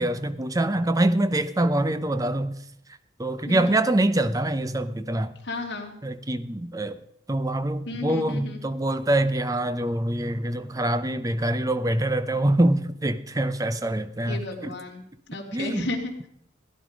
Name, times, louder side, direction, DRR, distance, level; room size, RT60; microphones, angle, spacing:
voice 1, 0.0-2.5 3.2-5.3 6.0-7.0 7.3-14.7 15.5-15.9, right 1 dB, 20° right, 12 dB, 0.7 m, -25 dB
voice 2, 3.5-3.8 5.4-5.9 7.9-8.6 14.3-15.0 15.3-16.3, left 2 dB, 65° left, 0 dB, 2.6 m, -33 dB
16.5 x 10.5 x 5.2 m, 0.71 s
head